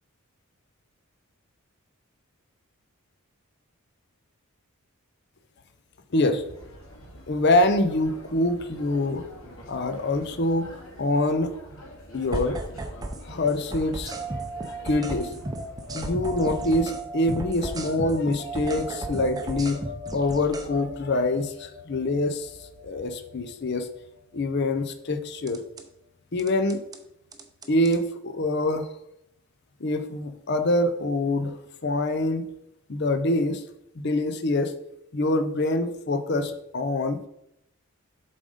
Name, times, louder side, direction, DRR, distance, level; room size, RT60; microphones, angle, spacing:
voice 1, 6.1-6.4 7.3-9.2 9.7-10.7 11.0-11.5 12.1-12.6 13.2-14.2 14.6-15.3 15.9-19.8 20.1-22.5 22.8-23.9 24.3-25.6 26.3-26.8 27.7-28.9 29.8-31.5 31.8-32.4 32.9-33.6 34.0-34.7 35.1-37.2, left 2 dB, 50° left, 8 dB, 0.6 m, -25 dB
sound 1, 6.3-16.0, equal, 70° left, 2.1 m, -46 dB
sound 2, 12.3-13.2 13.5-17.0 17.3-20.7 25.5-25.8 26.4-27.0 27.3-28.0, right 1 dB, 15° right, 0.6 m, -34 dB
sound 3, 14.1-24.9, right 2 dB, 35° right, 1.4 m, -40 dB
7.5 x 3.9 x 4.9 m, 0.77 s
head